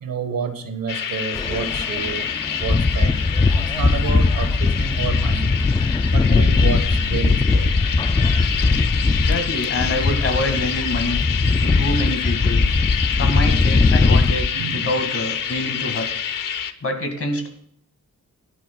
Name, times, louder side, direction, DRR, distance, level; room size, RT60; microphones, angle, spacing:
voice 1, 0.0-3.3 3.6-5.6 6.1-7.8 14.5-14.9, right 6 dB, 85° right, 1.4 m, -29 dB
sound 1, 0.9-16.7, left 8 dB, 75° left, 0.8 m, -27 dB
sound 2, 1.4-14.5, left 3 dB, 15° left, 0.3 m, -19 dB
voice 2, 9.1-11.2 11.6-12.6 13.1-14.5 14.7-16.1 16.8-17.5, left 1 dB, 45° left, 2.1 m, -25 dB
21.0 x 10.5 x 2.4 m
wide cardioid pair, 140°, 33 cm